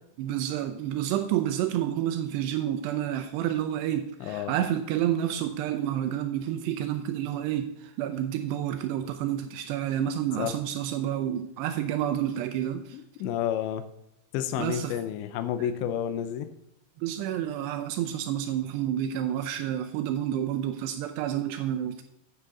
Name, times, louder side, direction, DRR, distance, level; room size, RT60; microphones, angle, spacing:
voice 1, 0.2-13.0 14.6-15.0 17.0-22.0, right 11 dB, 85° right, 8 dB, 2.4 m, -29 dB
voice 2, 4.2-4.5 10.4-10.5 12.9-13.8 14.3-16.5, left 10 dB, 80° left, 9 dB, 2.7 m, -30 dB
9.8 x 9.1 x 3.7 m, 0.81 s
omnidirectional pair, 5.4 m